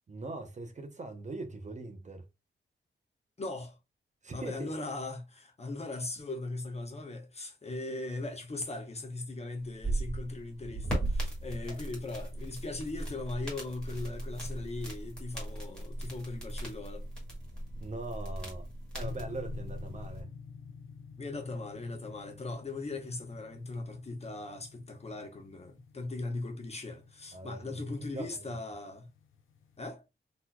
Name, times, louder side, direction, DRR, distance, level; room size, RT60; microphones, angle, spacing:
voice 1, 0.1-2.2 4.2-4.7 11.7-11.8 17.8-18.7 18.9-20.3 27.3-28.3, right 2 dB, 35° right, 0.7 m, -41 dB
voice 2, 3.4-3.8 4.3-17.1 21.2-29.1 29.8-30.0, left 2 dB, 30° left, 0.9 m, -39 dB
sound 1, 9.6-20.2, right 1 dB, 5° left, 1.8 m, -38 dB
sound 2, 19.0-29.8, left 6 dB, 85° left, 0.7 m, -50 dB
4.0 x 2.9 x 2.2 m
wide cardioid pair, 140°, 20 cm